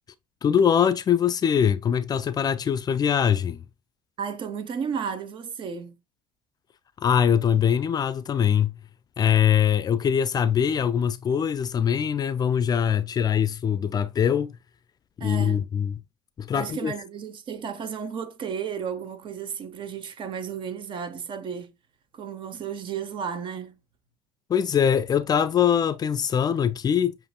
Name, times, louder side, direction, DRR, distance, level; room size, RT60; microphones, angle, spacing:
voice 1, 0.4-3.6 7.0-8.7 9.2-14.6 15.2-16.0 16.4-16.9 24.5-27.1, left 8 dB, 35° left, 0.4 m, -22 dB
voice 2, 4.2-6.0 15.2-15.7 16.5-21.7 22.1-23.8, right 7 dB, 45° right, 0.9 m, -33 dB
7.5 x 2.5 x 2.2 m
hypercardioid pair, 70°, 11 cm